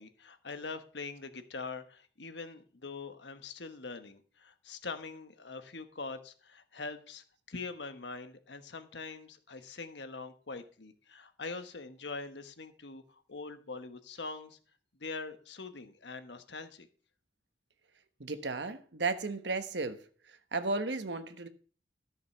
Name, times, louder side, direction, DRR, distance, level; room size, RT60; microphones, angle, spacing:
voice 1, 0.0-14.6 15.0-16.9, left 4 dB, 85° left, 1.3 m, -43 dB
voice 2, 18.2-20.0 20.3-21.5, right 3 dB, 80° right, 1.2 m, -34 dB
13.5 x 6.6 x 5.7 m
head